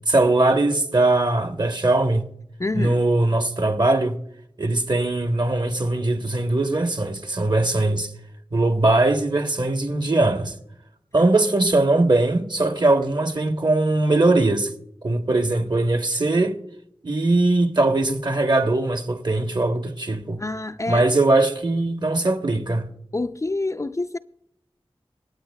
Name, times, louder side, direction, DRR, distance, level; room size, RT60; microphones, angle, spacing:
voice 1, 0.1-2.3 2.7-4.2 4.6-8.1 8.5-10.5 11.1-14.7 15.0-16.6 17.0-20.4 20.9-22.9, right 2 dB, 45° right, 1.2 m, -20 dB
voice 2, 2.6-3.0 20.4-21.1 23.1-24.2, left 2 dB, 30° left, 0.4 m, -27 dB
25.5 x 8.8 x 2.3 m
wide cardioid pair, 55°, 10 cm